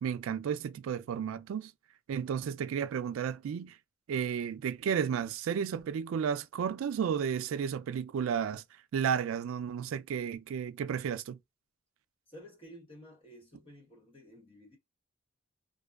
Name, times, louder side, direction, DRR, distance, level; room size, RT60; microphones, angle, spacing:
voice 1, 0.0-1.7 2.1-3.8 4.1-8.6 8.9-11.4, right 7 dB, 85° right, 0.3 m, -33 dB
voice 2, 12.3-14.8, equal, 25° left, 1.1 m, -52 dB
2.5 x 2.2 x 2.3 m
head